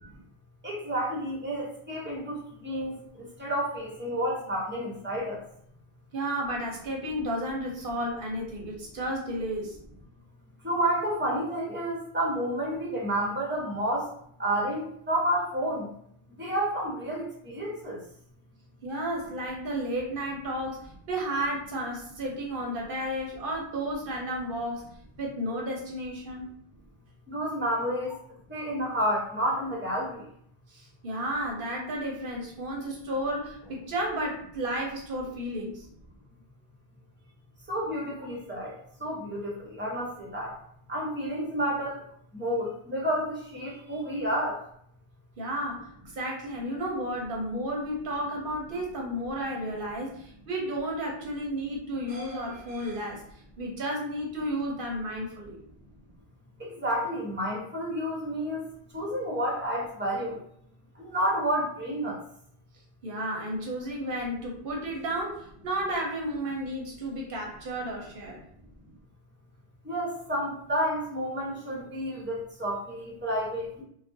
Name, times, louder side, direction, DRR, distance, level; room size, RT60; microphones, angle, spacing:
voice 1, 0.6-5.4 10.6-14.1 14.4-15.9 16.4-18.0 27.3-28.1 28.5-30.2 37.7-38.7 39.0-40.5 40.9-42.0 42.3-44.6 56.6-58.6 58.9-60.4 61.0-62.2 69.8-73.8, equal, 15° right, -4 dB, 0.4 m, -30 dB
voice 2, 6.1-9.8 18.8-24.9 25.2-26.5 30.7-35.9 45.4-53.2 53.6-55.6 63.0-68.4, right 1 dB, 60° right, -1 dB, 0.7 m, -32 dB
2.3 x 2.1 x 2.5 m, 0.68 s
omnidirectional pair, 1.2 m